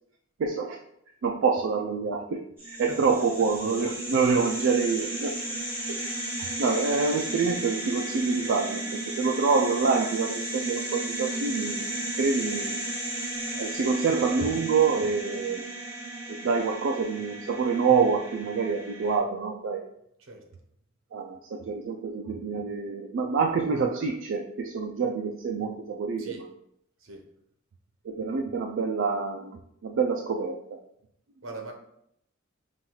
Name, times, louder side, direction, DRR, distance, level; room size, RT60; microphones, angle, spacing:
voice 1, 0.4-0.8 1.2-5.4 6.6-12.9 13.5-15.7 16.3-19.9 21.1-26.5 28.0-30.8, right 5 dB, 65° right, 1 dB, 0.3 m, -27 dB
sound 1, 2.6-19.2, right 1 dB, 10° right, 1.4 m, -34 dB
voice 2, 31.4-31.7, right 2 dB, 85° right, 2 dB, 0.8 m, -41 dB
5.5 x 2.3 x 3.0 m, 0.73 s
head